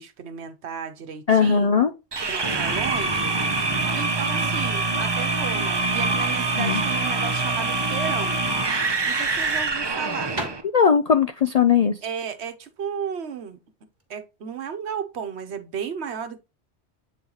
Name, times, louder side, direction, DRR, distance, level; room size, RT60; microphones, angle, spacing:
voice 1, 0.0-1.9 2.2-8.4 9.1-10.4 12.0-13.6 14.1-16.4, right 7 dB, 75° right, 1.1 m, -34 dB
voice 2, 1.3-1.9 6.6-6.8 10.7-12.0, left 6 dB, 55° left, 0.4 m, -19 dB
sound 1, 2.1-10.6, right 3 dB, 30° right, 0.6 m, -24 dB
sound 2, 10.3-14.1, right 2 dB, 45° right, 1.5 m, -40 dB
8.3 x 3.9 x 3.0 m
omnidirectional pair, 1.1 m